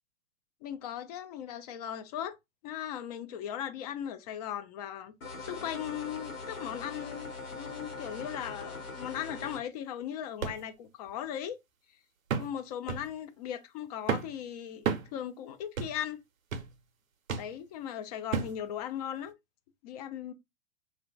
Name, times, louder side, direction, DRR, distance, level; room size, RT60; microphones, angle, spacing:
voice 1, 0.6-2.4 2.6-5.1 5.4-11.6 12.4-16.2 17.3-19.3 19.8-20.3, left 10 dB, 30° left, 0.4 m, -38 dB
sound 1, 5.2-9.6, left 3 dB, 85° left, 1.1 m, -42 dB
sound 2, 10.4-10.6 11.1-11.2 12.3-12.6 12.9-13.1 14.1-14.4 14.9-15.1 15.8-16.0 16.5-16.7 17.3-17.5 18.3-18.6 19.3-19.4, right 6 dB, 80° right, 0.6 m, -32 dB
2.1 x 2.1 x 3.8 m
figure-of-eight pair, 100°, 40 cm